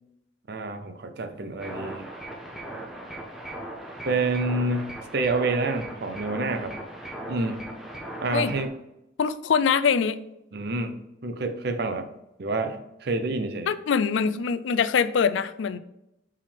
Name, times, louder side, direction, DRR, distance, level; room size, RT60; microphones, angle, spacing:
voice 1, 0.5-2.1 4.0-6.8 7.3-7.7 8.2-8.7 10.5-12.1 12.4-13.7, right 3 dB, 55° right, 8 dB, 0.7 m, -28 dB
sound 1, 1.6-8.7, right 1 dB, ahead, 1.0 m, -38 dB
voice 2, 9.2-10.2 13.7-15.8, left 6 dB, 80° left, 14 dB, 0.4 m, -23 dB
5.7 x 4.9 x 3.4 m, 0.87 s
head